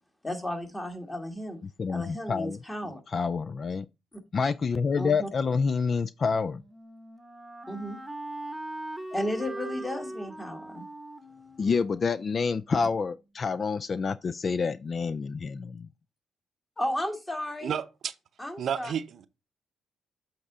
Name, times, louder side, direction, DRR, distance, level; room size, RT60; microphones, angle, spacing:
voice 1, 0.2-1.6 1.9-3.0 5.0-5.3 7.7-8.0 9.1-10.9 16.8-17.7 18.4-18.9, left 1 dB, 15° left, 1.6 m, -33 dB
voice 2, 1.8-2.6 3.1-3.9 4.3-6.6 11.6-15.9, left 5 dB, 40° left, 0.3 m, -28 dB
Wind instrument woodwind instrument, 6.3-13.1, right 1 dB, 5° right, 1.1 m, -41 dB
voice 3, 17.6-18.1 18.6-19.3, right 8 dB, 60° right, 0.6 m, -31 dB
7.8 x 3.6 x 4.8 m
cardioid pair, 90°, 0 cm